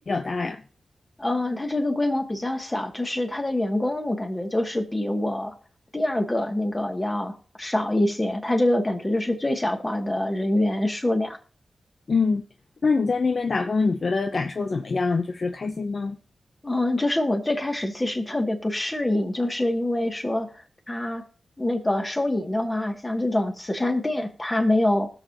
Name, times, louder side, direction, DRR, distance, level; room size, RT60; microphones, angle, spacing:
voice 1, 0.1-0.6 12.1-12.4 12.8-16.2, left 4 dB, 60° left, 0.7 m, -24 dB
voice 2, 1.2-5.5 5.9-11.4 16.6-20.5 20.9-21.2 21.6-25.1, left 1 dB, 25° left, 2.5 m, -25 dB
20.0 x 6.9 x 3.0 m
cardioid pair, 40°, 0 cm